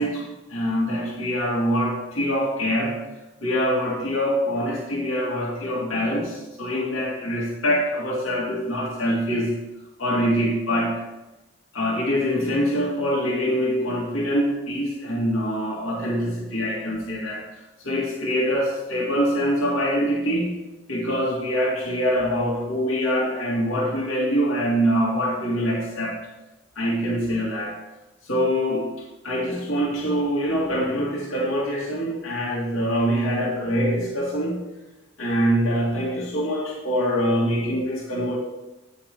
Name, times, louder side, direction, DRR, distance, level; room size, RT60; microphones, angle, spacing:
voice 1, 0.0-3.0 3.4-9.5 10.0-11.0 11.7-20.5 20.9-26.2 26.8-27.8 28.2-34.6 35.2-38.4, equal, 85° left, -5 dB, 2.3 m, -24 dB
9.8 x 6.3 x 4.6 m, 1.0 s
head